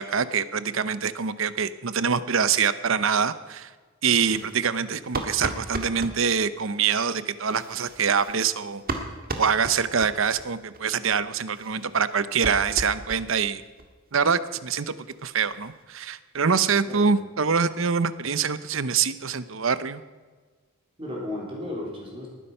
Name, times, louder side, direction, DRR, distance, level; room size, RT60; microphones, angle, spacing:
voice 1, 0.0-3.7 4.0-8.8 9.4-13.6 14.1-15.0 15.2-20.0, right 6 dB, 65° right, 14 dB, 0.7 m, -25 dB
sound 1, 4.2-6.2 7.4-10.5 10.7-10.8 11.1-11.2 11.5-13.5 13.8-13.9 14.2-14.3 14.6-14.7 15.0-15.8, right 2 dB, 45° right, 1.6 m, -36 dB
voice 2, 16.8-17.2 21.0-22.3, left 1 dB, 25° right, -3 dB, 3.6 m, -34 dB
20.0 x 10.0 x 5.5 m, 1.4 s
head